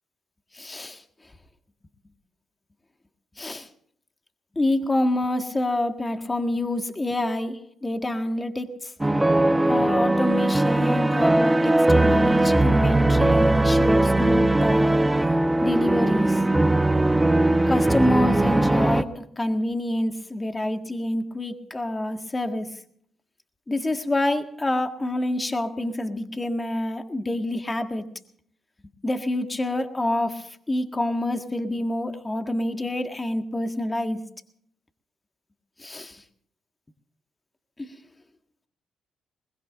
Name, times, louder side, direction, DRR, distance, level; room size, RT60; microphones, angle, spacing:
voice 1, 0.5-1.0 3.4-3.7 4.6-8.9 9.7-15.1 15.6-16.4 17.7-22.7 23.7-28.1 29.0-34.2 35.8-36.2 37.8-37.9, left 1 dB, 25° left, 6 dB, 1.7 m, -27 dB
sound 1, 9.0-19.0, right 1 dB, 15° right, 1.2 m, -20 dB
22.0 x 20.5 x 2.6 m, 0.66 s
supercardioid pair, 55°, 0 cm